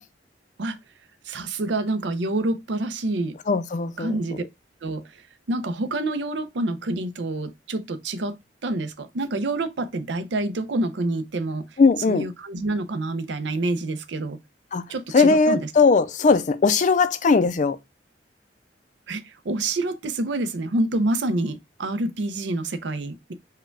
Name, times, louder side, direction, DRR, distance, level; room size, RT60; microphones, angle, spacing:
voice 1, 1.2-3.4 4.0-4.4 4.8-8.4 8.6-11.8 12.1-14.4 14.9-15.7 19.1-23.3, right 2 dB, 75° right, 0.6 m, -27 dB
voice 2, 3.5-4.2 11.8-12.3 14.7-14.9 15.1-17.8, left 4 dB, 45° left, 0.4 m, -19 dB
4.7 x 2.3 x 4.4 m
head